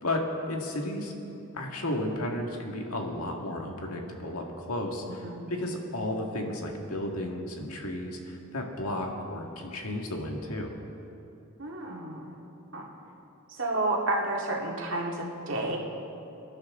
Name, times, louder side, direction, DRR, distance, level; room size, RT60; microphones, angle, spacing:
voice 1, 0.0-1.1 1.5-10.7, left 1 dB, 90° left, 1 dB, 2.0 m, -33 dB
voice 2, 11.6-12.3 12.7-12.9 13.6-15.8, right 2 dB, 65° right, -1 dB, 2.1 m, -30 dB
25.5 x 11.5 x 3.8 m, 2.8 s
head